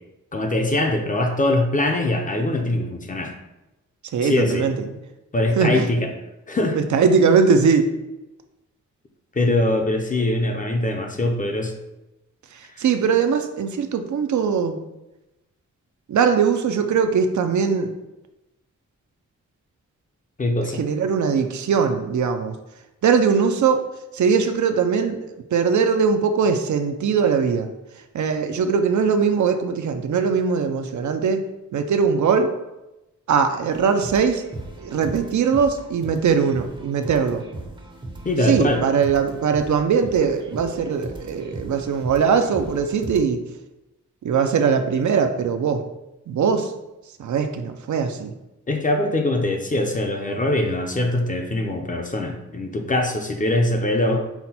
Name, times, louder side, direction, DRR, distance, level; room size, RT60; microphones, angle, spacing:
voice 1, 0.3-3.3 4.2-4.7 5.3-6.1 6.5-6.8 9.3-11.7 12.8-12.9 20.4-20.8 38.2-38.8 48.7-54.2, left 1 dB, 25° left, 3 dB, 0.5 m, -22 dB
voice 2, 4.1-4.9 5.6-5.9 6.8-7.9 12.8-14.8 16.1-18.0 20.8-22.5 23.0-23.8 24.1-27.7 28.1-31.4 31.7-32.6 33.3-34.4 34.8-37.4 38.4-43.4 44.2-45.8 46.3-46.7 47.2-48.3, right 6 dB, 70° right, 6 dB, 0.5 m, -20 dB
sound 1, 33.7-43.2, right 2 dB, 15° right, 0.6 m, -38 dB
5.7 x 2.2 x 4.1 m, 0.97 s
wide cardioid pair, 130°, 30 cm